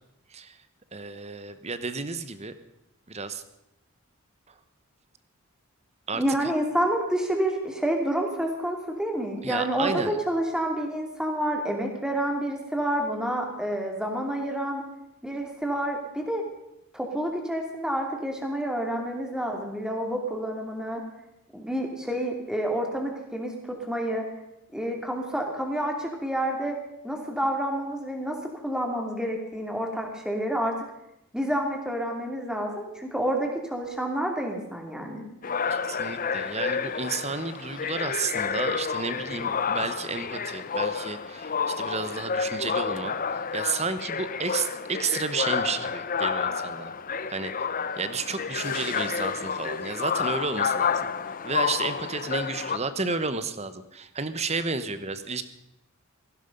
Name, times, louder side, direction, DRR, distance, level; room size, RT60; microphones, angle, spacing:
voice 1, 0.9-2.5 3.1-3.4 6.1-6.5 9.4-10.2 35.7-46.9 47.3-47.5 48.0-51.1 51.4-55.4, right 4 dB, 30° right, 12 dB, 1.1 m, -32 dB
voice 2, 6.1-14.8 15.2-16.4 16.9-21.0 21.5-24.2 24.7-26.8 27.0-28.4 28.6-30.7 31.3-35.2, right 1 dB, 5° right, 2 dB, 2.7 m, -29 dB
sound 1, 35.4-52.8, left 6 dB, 40° left, 0.7 m, -30 dB
17.0 x 15.5 x 5.4 m, 0.84 s
head